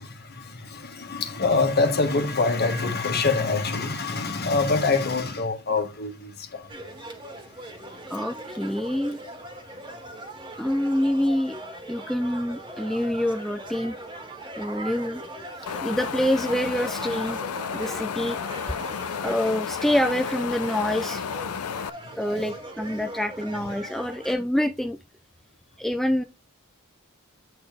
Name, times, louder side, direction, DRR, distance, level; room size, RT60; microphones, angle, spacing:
voice 1, 0.0-7.9 9.9-10.0 21.5-22.5 23.8-23.9, left 3 dB, 45° left, 1.6 m, -26 dB
sound 1, 6.7-24.3, right 1 dB, 20° right, 1.7 m, -40 dB
voice 2, 8.1-9.2 10.6-14.0 14.6-15.3 15.6-17.4 17.7-18.4 19.2-21.2 22.2-25.0 25.8-26.2, left 1 dB, ahead, 0.3 m, -26 dB
Wind, 15.7-21.9, left 7 dB, 85° left, 0.5 m, -32 dB
8.9 x 4.0 x 3.4 m
head